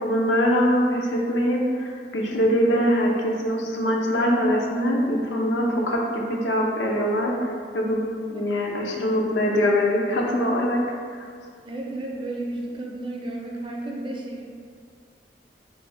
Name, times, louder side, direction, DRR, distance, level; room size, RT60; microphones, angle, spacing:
voice 1, 0.0-8.0 8.3-10.8 11.1-11.3, equal, 90° left, -1 dB, 0.5 m, -23 dB
voice 2, 8.3-9.0 11.7-14.4, right 2 dB, 30° right, -2 dB, 0.5 m, -33 dB
3.3 x 2.1 x 4.0 m, 2.1 s
head